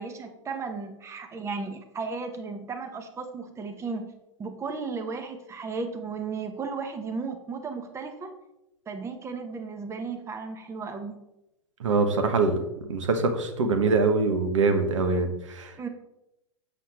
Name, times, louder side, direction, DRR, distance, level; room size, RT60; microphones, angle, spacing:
voice 1, 0.0-4.1 4.4-8.3 8.9-11.2 15.8-15.9, right 4 dB, 15° right, 7 dB, 0.9 m, -35 dB
voice 2, 11.8-15.9, right 3 dB, 70° right, 6 dB, 1.1 m, -24 dB
7.5 x 6.5 x 3.4 m, 0.90 s
figure-of-eight pair, 95°, 16 cm